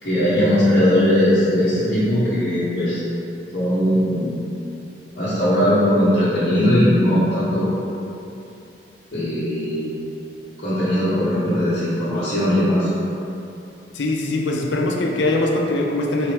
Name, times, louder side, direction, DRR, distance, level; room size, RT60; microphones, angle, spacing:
voice 1, 0.0-3.0 3.5-4.3 5.1-7.7 9.1-9.9 10.6-12.9, equal, 50° left, -13 dB, 0.9 m, -19 dB
voice 2, 13.9-16.3, left 2 dB, 80° left, 0 dB, 0.5 m, -22 dB
4.5 x 3.2 x 3.3 m, 2.8 s
head